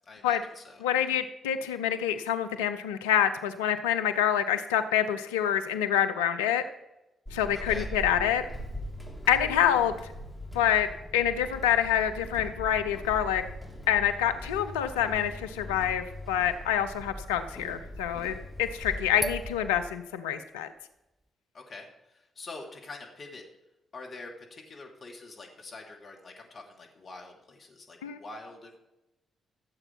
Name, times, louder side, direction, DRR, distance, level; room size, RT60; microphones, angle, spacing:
voice 1, 0.1-0.8 7.5-7.9 21.5-23.4 23.9-28.8, left 3 dB, 50° left, 0 dB, 2.5 m, -45 dB
voice 2, 0.8-6.6 7.3-8.5 9.3-9.9 10.5-10.9 11.1-13.4 13.9-20.7 28.0-28.2, left 10 dB, 80° left, 9 dB, 0.6 m, -26 dB
Walk footsteps / Squeak, 7.3-19.9, left 1 dB, 15° left, 3.3 m, -41 dB
sound 1, 17.0-17.1 17.3-17.9 19.2-20.5, right 1 dB, 15° right, 0.7 m, -38 dB
15.5 x 7.8 x 4.6 m, 0.93 s
hypercardioid pair, 40°, 0 cm